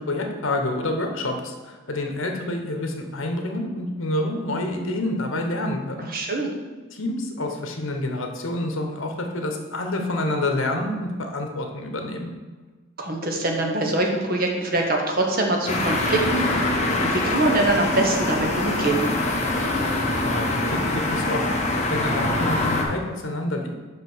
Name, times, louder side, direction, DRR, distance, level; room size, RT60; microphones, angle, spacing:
voice 1, 0.0-6.1 6.9-12.3 20.2-23.8, left 1 dB, 65° left, 4 dB, 1.1 m, -28 dB
voice 2, 6.1-6.5 13.0-19.1, right 2 dB, 45° right, 2 dB, 1.1 m, -24 dB
sound 1, 15.7-22.8, left 2 dB, 35° left, 1.1 m, -24 dB
5.6 x 5.2 x 6.2 m, 1.3 s
head